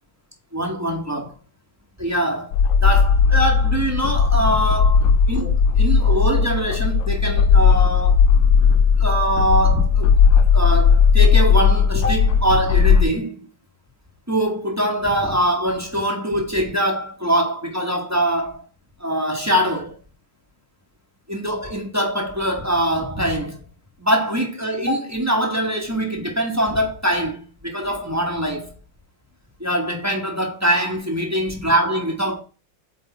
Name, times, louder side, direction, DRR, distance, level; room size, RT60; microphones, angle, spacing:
voice 1, 0.5-1.3 2.0-5.0 5.3-8.3 9.0-10.1 10.5-13.5 14.3-18.6 19.0-19.9 21.3-23.6 24.0-28.7 29.6-32.4, equal, 10° right, 1.0 m, -23 dB
sound 1, 2.5-13.0, left 6 dB, 75° left, 1.2 m, -16 dB
8.2 x 3.4 x 4.1 m
omnidirectional pair, 2.3 m